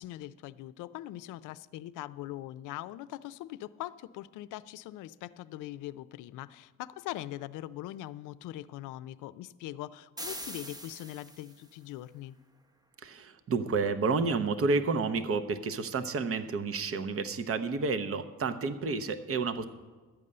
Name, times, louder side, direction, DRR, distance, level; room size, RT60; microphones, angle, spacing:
voice 1, 0.0-12.4, left 14 dB, 85° left, 16 dB, 0.5 m, -42 dB
sound 1, 10.2-11.7, right 1 dB, 15° right, 0.7 m, -42 dB
voice 2, 13.0-19.7, right 4 dB, 50° right, 10 dB, 0.8 m, -30 dB
12.5 x 5.4 x 8.6 m, 1.3 s
cardioid pair, 90°, 30 cm